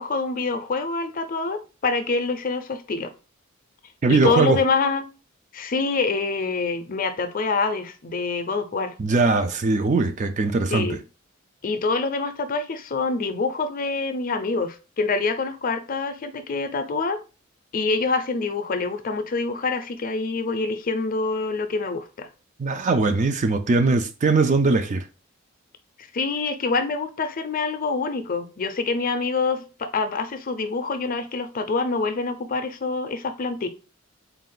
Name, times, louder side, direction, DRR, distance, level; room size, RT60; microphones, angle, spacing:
voice 1, 0.0-3.1 4.1-5.1 5.5-8.9 10.7-11.0 11.6-17.2 17.7-22.3 26.1-33.7, left 4 dB, 45° left, 0.5 m, -26 dB
voice 2, 4.0-4.6 9.0-11.0 22.6-25.0, right 3 dB, 35° right, 0.4 m, -21 dB
4.1 x 2.4 x 3.8 m
head